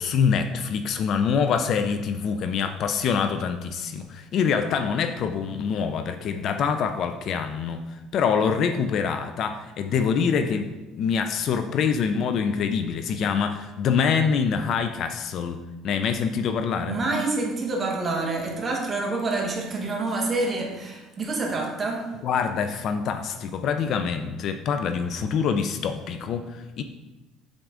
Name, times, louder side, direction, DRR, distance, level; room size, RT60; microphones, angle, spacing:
voice 1, 0.0-17.0 22.2-26.8, left 6 dB, 45° left, 8 dB, 0.4 m, -25 dB
voice 2, 16.9-22.0, right 3 dB, 20° right, 0 dB, 1.1 m, -27 dB
7.9 x 3.7 x 3.7 m, 1.1 s
cardioid pair, 155°, 0 cm